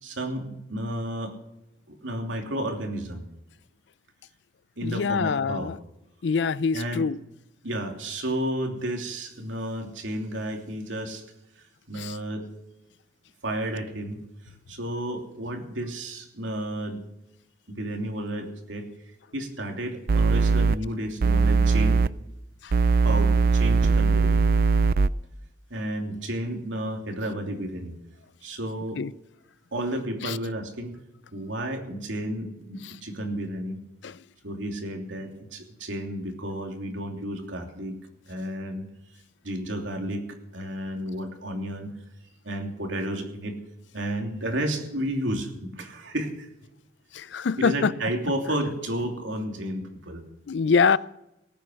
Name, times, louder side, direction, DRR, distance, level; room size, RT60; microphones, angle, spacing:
voice 1, 0.0-1.3 1.9-3.3 4.8-5.8 6.7-7.0 7.6-11.2 11.9-12.4 13.4-14.2 14.7-17.0 17.7-18.9 19.3-22.0 23.0-24.5 25.7-28.0 28.4-29.0 29.7-31.0 31.3-33.8 34.4-38.0 38.3-38.9 39.4-41.9 42.4-43.6 43.9-46.5 47.6-50.2, right 1 dB, 80° right, 3.0 m, -32 dB
voice 2, 4.8-5.8 6.2-7.2 12.0-12.1 22.6-22.7 29.0-29.1 30.2-30.4 34.0-34.1 47.1-47.9 50.5-51.0, left 5 dB, 65° left, 0.4 m, -24 dB
sound 1, 20.1-20.8 21.2-22.1 22.7-25.1, right 4 dB, 50° right, 0.4 m, -20 dB
19.0 x 9.2 x 6.4 m
head